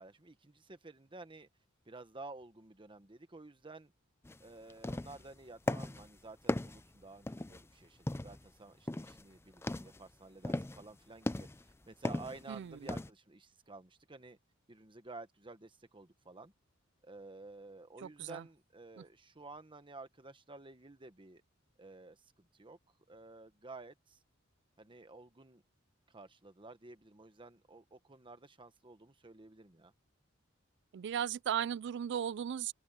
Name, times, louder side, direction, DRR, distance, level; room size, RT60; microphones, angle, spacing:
voice 1, 0.0-1.5 1.8-3.9 4.4-14.4 14.7-16.5 17.0-21.4 21.8-22.8 23.1-24.2 24.8-25.6 26.1-29.9, right 3 dB, 25° right, 1.2 m, -52 dB
sound 1, 4.2-4.4 4.7-5.3 5.7-6.1 6.5-7.6 8.1-8.5 8.9-9.2 9.5-10.0 10.4-10.8 11.3-11.7 12.0-12.4 12.9-13.1, left 1 dB, 10° left, 0.5 m, -37 dB
voice 2, 12.5-12.8 18.0-18.4 19.0-19.1 30.9-32.7, right 9 dB, 60° right, 0.3 m, -36 dB
open air
head